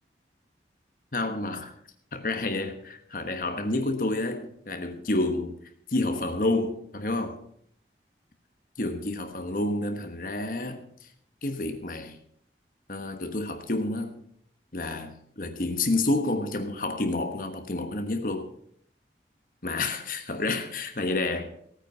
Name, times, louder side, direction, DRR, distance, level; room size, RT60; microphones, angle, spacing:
voice 1, 1.1-1.7 2.1-5.6 5.9-7.4 8.8-11.1 11.4-12.2 12.9-14.2 14.7-18.5 19.6-21.5, left 2 dB, 50° left, 1.2 m, -29 dB
16.0 x 9.2 x 5.5 m
head